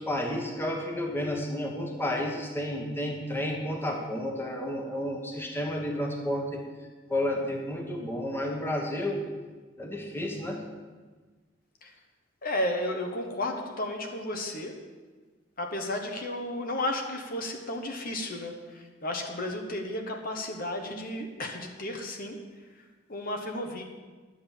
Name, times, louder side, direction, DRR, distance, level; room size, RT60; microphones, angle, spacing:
voice 1, 0.0-6.6 7.1-9.3 9.8-10.7, left 1 dB, 10° left, 1 dB, 1.3 m, -31 dB
voice 2, 12.4-14.7 15.6-22.4 23.1-23.8, left 1 dB, 50° left, 3 dB, 1.3 m, -33 dB
11.0 x 7.8 x 7.4 m, 1.3 s
head